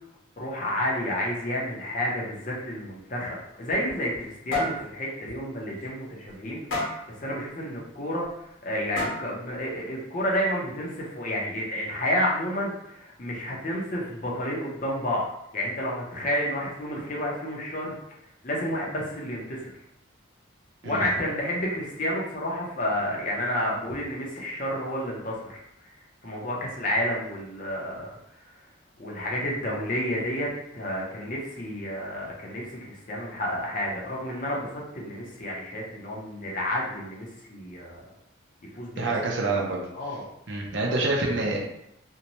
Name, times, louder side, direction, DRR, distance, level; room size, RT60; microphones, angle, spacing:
voice 1, 0.4-15.3 15.5-17.9 18.4-19.7 20.8-26.0 26.2-28.1 29.0-38.0 38.7-39.1 39.5-39.6 39.9-40.2, equal, 40° left, -3 dB, 0.6 m, -30 dB
sound 1, 3.5-4.3 4.5-4.8 5.3-5.4 5.8-5.9 6.7-7.1 8.2-8.3 9.0-9.4, left 2 dB, 80° left, 1.0 m, -30 dB
voice 2, 39.0-39.8 40.5-41.6, right 2 dB, 65° right, -2 dB, 0.6 m, -26 dB
2.6 x 2.2 x 2.9 m, 0.79 s
head